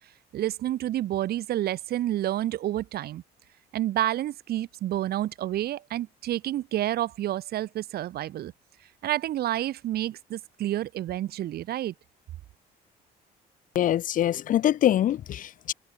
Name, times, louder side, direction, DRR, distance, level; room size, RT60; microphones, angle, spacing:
voice 1, 0.3-3.2 3.7-8.5 9.0-11.9, right 13 dB, 65° right, 4.7 m, -29 dB
voice 2, 13.7-15.7, left 11 dB, 55° left, 0.8 m, -24 dB
cardioid pair, 110°, 17 cm